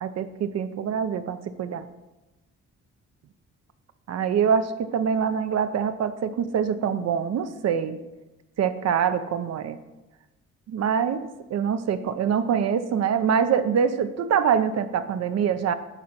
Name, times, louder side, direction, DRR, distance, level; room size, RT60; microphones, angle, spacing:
voice 1, 0.0-1.8 4.1-8.0 8.6-9.8 10.7-15.7, right 7 dB, 60° right, 10 dB, 0.6 m, -24 dB
9.0 x 3.8 x 6.0 m, 1.0 s
cardioid pair, 90°, 30 cm